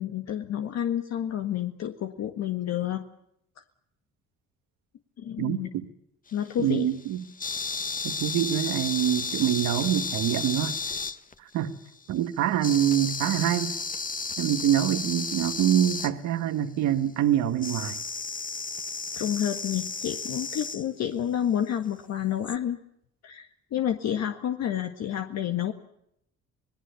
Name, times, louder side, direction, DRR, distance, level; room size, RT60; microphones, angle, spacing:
voice 1, 0.0-3.0 5.2-5.7 6.3-6.9 19.2-22.8 23.2-25.7, left 10 dB, 60° left, 6 dB, 1.7 m, -29 dB
voice 2, 5.4-5.9 6.6-7.2 8.0-10.8 11.4-11.7 12.1-13.8 14.4-18.0, right 11 dB, 75° right, 8 dB, 1.7 m, -25 dB
sound 1, 6.3-11.5 12.6-16.1 17.6-20.9 22.4-22.6, left 4 dB, 30° left, 1.6 m, -33 dB
26.5 x 19.0 x 6.9 m, 0.76 s
cardioid pair, 85°, 29 cm